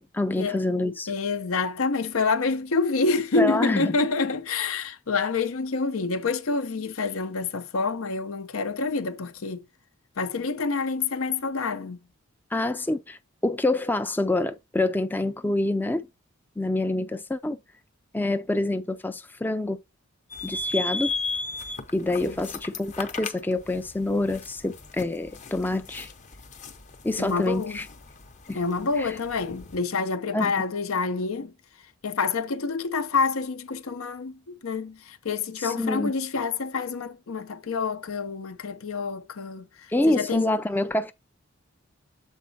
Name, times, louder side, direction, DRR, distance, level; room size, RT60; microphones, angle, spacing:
voice 1, 0.0-1.1 3.4-4.0 12.5-16.1 16.6-17.6 18.1-19.8 20.4-21.1 21.9-26.1 27.0-27.9 28.5-28.6 29.0-29.1 30.3-30.5 35.6-36.1 39.9-41.1, left 2 dB, 10° left, 0.3 m, -26 dB
voice 2, 1.1-9.7 10.2-12.0 22.2-22.4 27.2-27.8 28.5-40.6, left 4 dB, 80° left, 0.7 m, -27 dB
sound 1, 20.3-29.8, left 3 dB, 35° left, 0.7 m, -36 dB
7.3 x 4.1 x 4.0 m
head